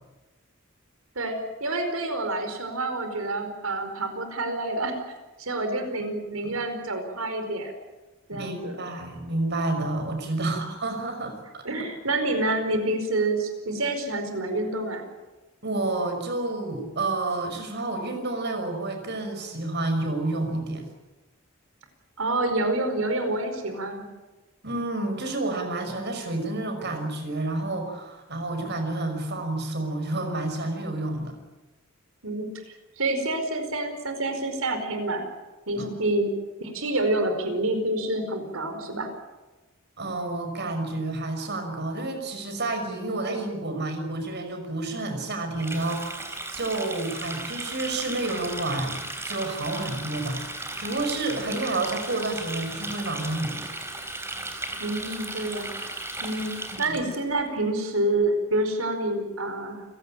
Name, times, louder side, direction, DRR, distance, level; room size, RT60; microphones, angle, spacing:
voice 1, 1.1-5.0 5.4-7.7 8.3-8.8 10.4-10.6 11.6-15.1 22.2-24.0 32.2-35.2 35.7-36.3 36.6-39.1 54.8-55.7 56.2-59.8, right 2 dB, 80° right, 7 dB, 4.8 m, -28 dB
voice 2, 8.3-11.7 15.6-20.8 24.6-31.4 35.8-35.9 40.0-50.4 50.8-53.7 56.7-57.0, right 2 dB, 55° right, 6 dB, 5.7 m, -30 dB
Water tap faucet, 45.6-57.2, right 2 dB, 10° right, 3.7 m, -36 dB
29.5 x 17.5 x 9.1 m, 1.1 s
head